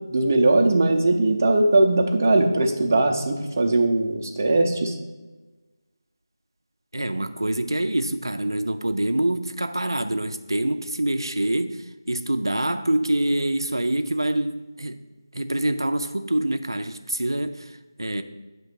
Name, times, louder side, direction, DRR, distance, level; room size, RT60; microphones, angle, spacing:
voice 1, 0.1-4.9, right 2 dB, 35° right, 2 dB, 0.6 m, -20 dB
voice 2, 6.9-11.8 12.1-15.0 15.3-18.2, right 1 dB, 90° right, 8 dB, 0.4 m, -25 dB
7.1 x 3.0 x 5.8 m, 1.2 s
figure-of-eight pair, 165°, 2 cm